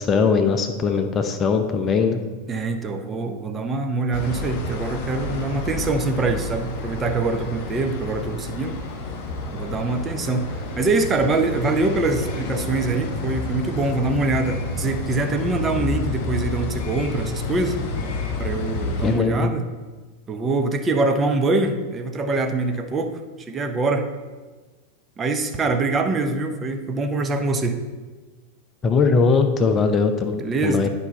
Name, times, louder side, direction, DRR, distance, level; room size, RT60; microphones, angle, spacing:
voice 1, 0.0-2.2 19.0-19.5 28.8-30.9, left 5 dB, 25° left, 7 dB, 0.6 m, -20 dB
voice 2, 2.5-8.8 9.5-10.5 10.8-17.8 18.4-19.7 20.3-24.1 25.2-27.8 30.4-30.9, right 3 dB, 20° right, 6 dB, 0.8 m, -24 dB
sound 1, 4.1-19.2, left 2 dB, 45° left, 1.5 m, -30 dB
10.5 x 5.5 x 4.0 m, 1.3 s
figure-of-eight pair, 90°, 0 cm